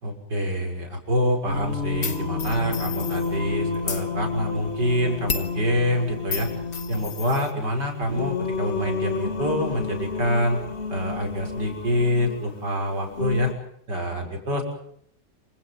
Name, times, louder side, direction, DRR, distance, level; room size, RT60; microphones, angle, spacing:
voice 1, 0.0-6.5 6.9-10.6 10.9-13.5 13.9-14.6, equal, 70° right, 3 dB, 6.9 m, -26 dB
Singing, 1.5-13.5, left 5 dB, 35° left, 2.7 m, -31 dB
sound 1, 2.0-3.3 3.7-4.1 5.3-5.6 6.3-7.5, left 5 dB, 55° left, 2.4 m, -32 dB
28.0 x 26.0 x 5.6 m, 0.67 s
omnidirectional pair, 1.9 m